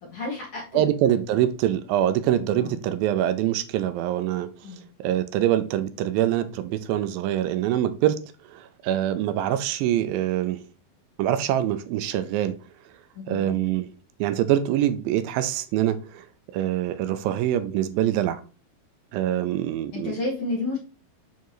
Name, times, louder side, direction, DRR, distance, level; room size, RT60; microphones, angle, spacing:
voice 1, 0.0-0.9 2.6-2.8 4.6-4.8 13.1-13.5 19.3-19.6 19.9-20.8, left 2 dB, 40° left, -4 dB, 2.7 m, -31 dB
voice 2, 0.7-4.5 5.0-8.2 8.5-10.6 11.2-12.5 13.3-13.9 14.2-16.3 16.5-18.4 19.1-20.2, right 12 dB, 85° right, 11 dB, 2.3 m, -24 dB
6.9 x 4.5 x 3.1 m, 0.34 s
omnidirectional pair, 4.1 m